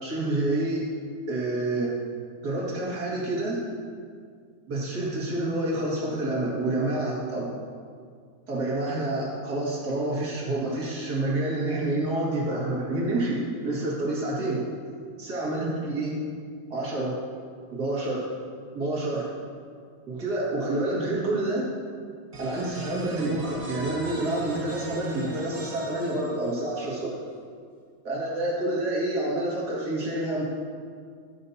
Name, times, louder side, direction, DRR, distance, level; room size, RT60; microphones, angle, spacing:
voice 1, 0.0-0.9 1.3-1.9 2.4-3.6 4.7-7.5 8.5-14.6 15.2-16.2 16.7-17.1 17.7-18.3 18.7-19.3 20.1-21.6 22.4-27.2 28.0-30.4, right 2 dB, 75° right, -6 dB, 2.6 m, -28 dB
sound 1, 22.3-26.9, right 1 dB, 35° right, 1.2 m, -40 dB
15.5 x 7.7 x 2.8 m, 2.1 s
omnidirectional pair, 1.7 m